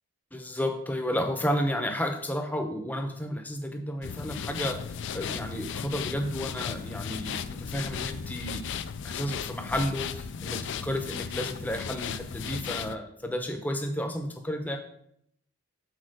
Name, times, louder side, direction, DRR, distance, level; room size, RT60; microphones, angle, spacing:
voice 1, 0.3-14.8, equal, 5° left, 4 dB, 0.7 m, -32 dB
sound 1, 4.0-12.9, left 7 dB, 55° left, 0.4 m, -35 dB
6.4 x 4.3 x 6.4 m, 0.72 s
head